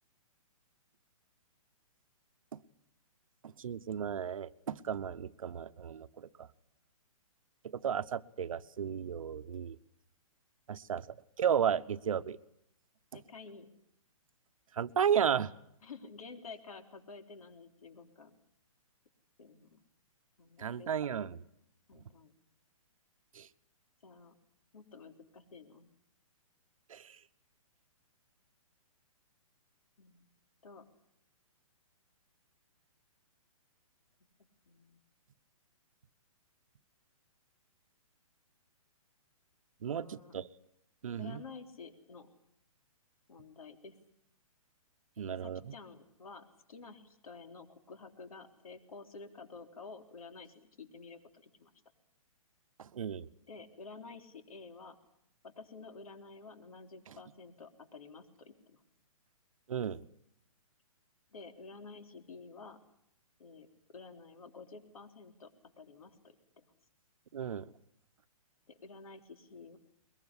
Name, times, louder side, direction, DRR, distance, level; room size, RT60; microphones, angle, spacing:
voice 1, 3.4-6.5 7.7-9.8 10.7-11.1 11.4-12.4 14.7-15.5 20.6-21.4 23.3-23.5 26.9-27.2 39.8-40.5 41.0-41.4 45.2-45.6 52.8-53.3 59.7-60.0 67.3-67.7, right 8 dB, 65° right, 12 dB, 1.1 m, -34 dB
voice 2, 13.1-13.7 15.8-18.4 19.4-19.8 20.4-20.9 21.9-22.4 24.0-24.4 24.7-25.9 30.0-30.3 30.6-30.9 34.7-35.0 39.9-40.3 41.2-42.3 43.3-44.0 45.3-51.7 53.5-55.0 55.4-58.8 61.3-62.8 63.4-65.5 65.8-66.7 68.7-69.8, left 4 dB, 75° left, 6 dB, 3.9 m, -51 dB
22.5 x 22.0 x 9.8 m, 0.74 s
hypercardioid pair, 165°, 18 cm